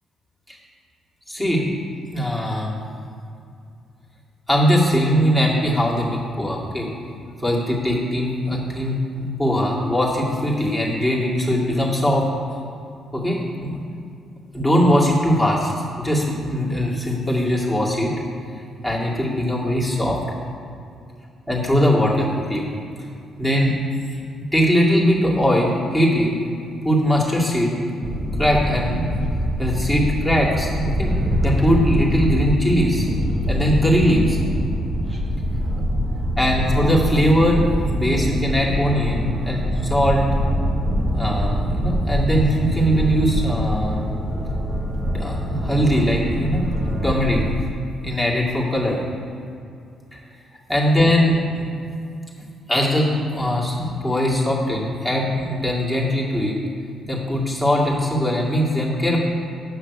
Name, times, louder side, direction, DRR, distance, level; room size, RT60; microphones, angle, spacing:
voice 1, 1.3-1.7 2.1-2.8 4.5-6.9 7.4-9.0 9.4-12.2 13.1-13.8 14.5-18.1 18.8-20.2 21.5-22.6 23.4-23.8 24.5-26.4 26.8-27.7 28.4-29.2 29.6-31.1 31.4-33.1 33.5-34.5 36.4-40.3 41.1-44.1 45.1-47.4 48.0-49.0 50.1-50.2 50.7-51.6 52.7-56.6 57.1-59.2, equal, 5° right, -4 dB, 2.2 m, -20 dB
sound 1, 28.0-47.5, equal, 35° right, 1.3 m, -24 dB
8.5 x 5.8 x 6.5 m, 2.5 s
cardioid pair, 90°, 0 cm